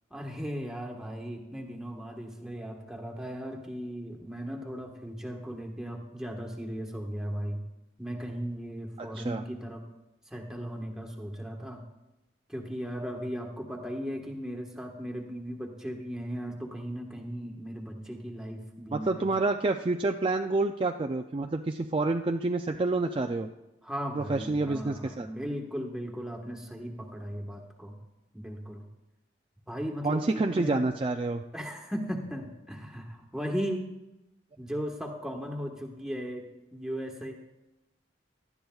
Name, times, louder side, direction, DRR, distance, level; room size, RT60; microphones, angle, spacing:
voice 1, 0.1-7.6 8.0-9.9 10.3-11.8 12.5-19.3 23.8-27.9 28.3-28.8 29.7-30.9 31.5-33.9 34.6-37.4, equal, 5° right, 1 dB, 1.4 m, -37 dB
voice 2, 9.0-9.4 18.9-23.5 24.2-25.3 30.0-31.4, right 3 dB, 30° right, 4 dB, 0.4 m, -28 dB
18.0 x 12.0 x 2.4 m, 0.96 s
head